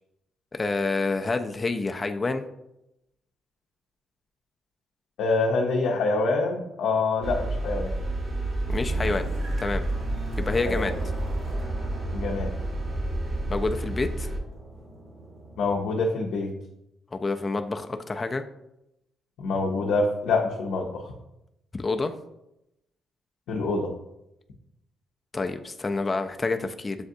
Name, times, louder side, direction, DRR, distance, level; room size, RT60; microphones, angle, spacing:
voice 1, 0.5-2.5 8.7-9.3 9.6-9.8 10.4-10.9 13.5-14.3 17.1-18.4 21.8-22.1 25.3-27.0, left 3 dB, 25° left, 6 dB, 0.3 m, -28 dB
voice 2, 5.2-7.9 10.6-10.9 12.1-12.6 15.6-16.5 19.4-21.1 23.5-23.9, left 3 dB, 80° left, -1 dB, 0.5 m, -26 dB
sound 1, 7.2-14.4, right 1 dB, 40° right, 0.7 m, -30 dB
sound 2, 7.3-15.9, right 2 dB, 60° right, 1.2 m, -40 dB
6.9 x 2.4 x 2.6 m, 0.85 s
cardioid pair, 90°, 0 cm